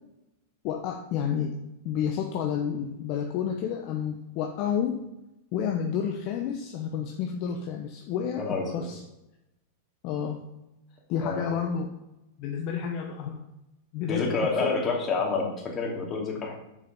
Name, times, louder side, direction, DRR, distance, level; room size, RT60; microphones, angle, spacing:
voice 1, 0.6-1.6 1.8-5.0 5.5-9.0 10.0-10.4 11.1-11.9 12.4-13.4 13.9-14.3 14.6-14.7, left 8 dB, 50° left, 3 dB, 0.8 m, -30 dB
voice 2, 8.4-8.7 11.2-11.5 14.1-16.5, left 4 dB, 30° left, -1 dB, 2.5 m, -28 dB
7.4 x 5.1 x 5.3 m, 0.92 s
hypercardioid pair, 115°, 0 cm